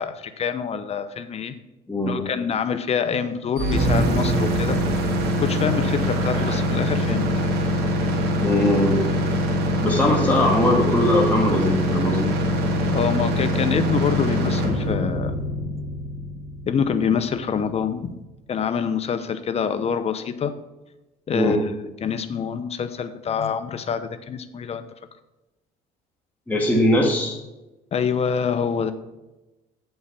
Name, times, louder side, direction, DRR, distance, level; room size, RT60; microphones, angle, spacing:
voice 1, 0.0-1.5 2.0-4.8 5.4-7.5 12.9-15.4 15.8-15.9 16.7-18.1 18.5-20.5 21.3-21.6 22.0-24.8 27.9-28.9, left 6 dB, 40° left, 10 dB, 0.8 m, -26 dB
sound 1, 3.6-17.5, equal, 75° right, 2.0 m, -23 dB
voice 2, 8.4-9.0 9.8-12.3 21.3-21.6 26.5-27.4, left 1 dB, 10° left, -2 dB, 1.6 m, -20 dB
8.1 x 5.6 x 5.8 m, 1.0 s
cardioid pair, 110°, 17 cm